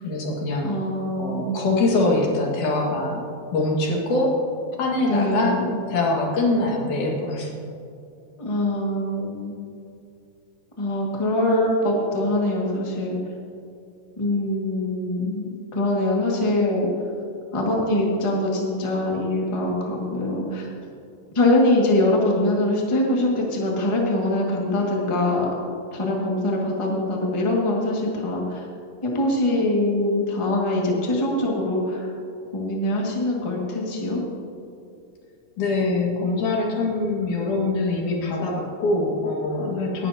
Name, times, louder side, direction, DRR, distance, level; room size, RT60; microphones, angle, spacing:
voice 1, 0.0-0.7 1.2-3.2 3.5-4.4 4.8-5.6 5.9-7.5 35.6-40.1, left 2 dB, 85° left, -1 dB, 3.3 m, -23 dB
voice 2, 0.6-1.5 5.1-5.6 8.4-9.5 10.8-13.2 14.2-16.9 17.5-20.7 21.3-25.5 25.9-28.6 29.0-32.1 32.5-34.2, left 1 dB, 15° left, -2 dB, 1.3 m, -23 dB
19.0 x 11.0 x 2.8 m, 2.5 s
omnidirectional pair, 3.4 m